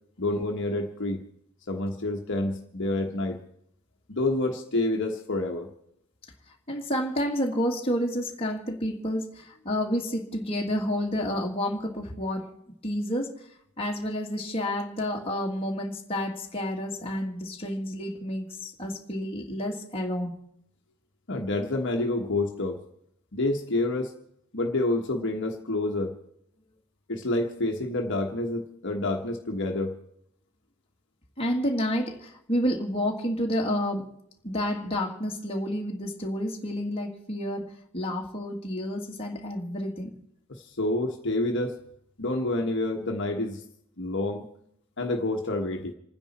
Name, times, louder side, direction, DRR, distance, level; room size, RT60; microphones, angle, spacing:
voice 1, 0.2-1.2 1.7-3.4 4.1-5.7 21.3-22.8 23.3-24.1 24.5-26.2 27.1-29.9 40.6-41.7 42.2-43.6 44.0-44.5 45.0-45.9, left 2 dB, 60° left, 2 dB, 1.3 m, -28 dB
voice 2, 6.7-12.5 12.8-13.3 13.8-20.3 31.4-34.1 34.4-40.1, equal, 30° left, 0 dB, 2.0 m, -30 dB
28.5 x 9.9 x 4.3 m, 0.72 s
head